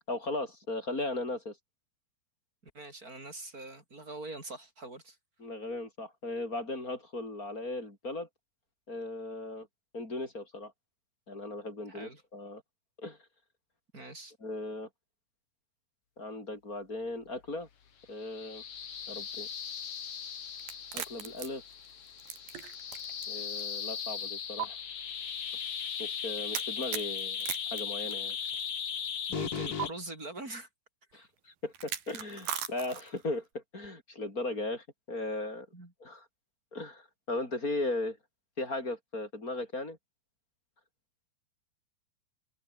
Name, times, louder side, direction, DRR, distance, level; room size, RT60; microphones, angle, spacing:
voice 1, 0.1-1.6 5.4-8.3 8.9-9.7 9.9-10.7 11.3-12.6 13.0-13.2 14.4-14.9 16.2-17.7 18.1-18.6 19.1-19.5 20.9-21.6 23.3-24.8 26.0-28.4 31.1-35.7 36.0-36.2 36.7-38.2 38.6-40.0, left 2 dB, 20° left, 6.0 m, -37 dB
voice 2, 2.7-5.2 11.9-12.2 13.9-14.3 29.3-30.7 31.1-31.3 35.7-35.9, right 2 dB, 20° right, 6.0 m, -43 dB
sound 1, 18.2-29.9, left 7 dB, 45° left, 2.8 m, -37 dB
sound 2, 20.6-23.3 23.6-23.7 24.6-24.7 26.5-28.7 29.8-29.9 31.7-33.2, right 9 dB, 70° right, 4.1 m, -38 dB
open air
omnidirectional pair, 4.4 m